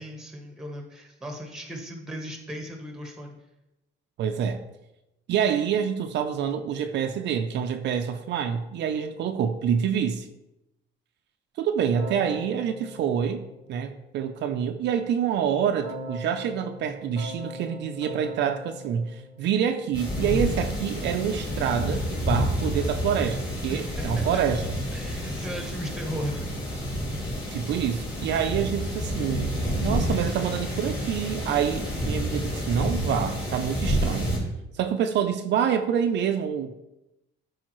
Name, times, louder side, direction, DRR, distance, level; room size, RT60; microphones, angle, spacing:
voice 1, 0.0-3.3 23.7-24.2 24.9-26.5, equal, ahead, 1.0 m, -37 dB
voice 2, 4.2-4.6 5.3-10.3 11.6-24.6 27.5-29.5 29.8-34.3 34.7-36.8, right 8 dB, 60° right, 0.5 m, -27 dB
Keyboard (musical), 11.9-14.3 15.8-20.1, equal, 70° left, 2.5 m, -41 dB
sound 1, 19.9-34.4, equal, 20° left, 2.1 m, -29 dB
12.0 x 4.8 x 3.1 m
cardioid pair, 180°, 21 cm